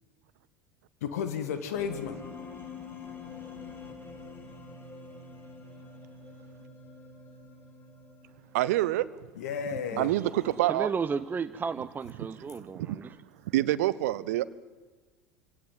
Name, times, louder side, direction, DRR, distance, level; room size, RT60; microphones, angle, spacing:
voice 1, 1.0-2.2 9.4-10.3, left 7 dB, 70° left, 10 dB, 1.9 m, -33 dB
sound 1, 1.7-8.8, left 4 dB, 25° left, 4.8 m, -46 dB
voice 2, 8.5-9.0 10.0-10.9 12.9-13.0 13.5-14.5, right 15 dB, 65° right, 16 dB, 0.8 m, -26 dB
voice 3, 9.9-13.2, right 5 dB, 20° right, 12 dB, 0.7 m, -34 dB
24.0 x 17.5 x 9.3 m, 1.3 s
figure-of-eight pair, 75°, 9 cm